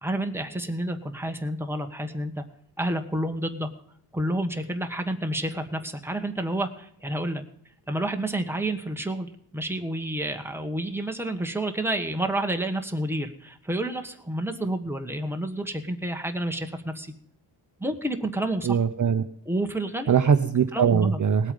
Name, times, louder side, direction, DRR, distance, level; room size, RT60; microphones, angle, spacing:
voice 1, 0.0-2.4 2.8-3.7 4.1-7.4 7.9-17.1 17.8-18.8 19.5-20.1 20.7-21.2, right 1 dB, 5° right, 4 dB, 1.4 m, -29 dB
voice 2, 18.6-19.2 20.1-21.5, right 7 dB, 40° right, 8 dB, 0.7 m, -21 dB
19.0 x 8.4 x 5.3 m, 0.67 s
wide cardioid pair, 125°, 45 cm